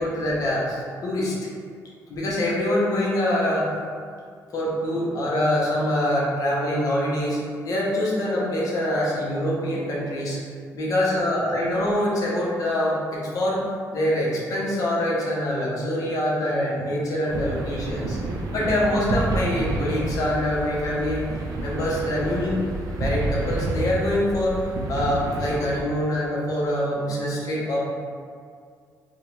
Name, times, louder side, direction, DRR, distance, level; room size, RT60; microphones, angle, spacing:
voice 1, 0.0-1.4 2.1-3.7 4.5-7.4 7.6-10.4 10.7-13.6 13.9-18.2 18.5-21.2 21.6-22.6 23.0-27.8, left 1 dB, 60° left, -5 dB, 0.7 m, -24 dB
sound 1, 17.3-25.8, right 2 dB, 65° right, 0.3 m, -29 dB
2.5 x 2.1 x 3.0 m, 2.1 s
cardioid pair, 105°, 7 cm